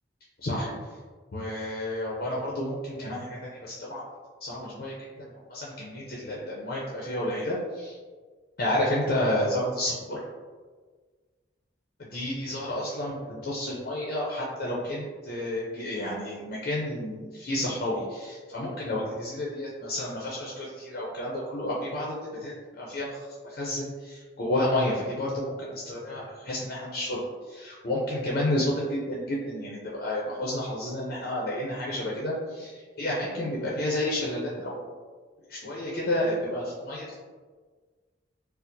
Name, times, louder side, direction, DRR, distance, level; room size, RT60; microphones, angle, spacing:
voice 1, 0.4-1.0 1.3-4.0 4.4-8.0 8.6-10.2 12.1-27.2 27.5-34.8 35.5-37.2, left 1 dB, 50° left, -4 dB, 0.5 m, -31 dB
4.3 x 2.0 x 2.6 m, 1.5 s
head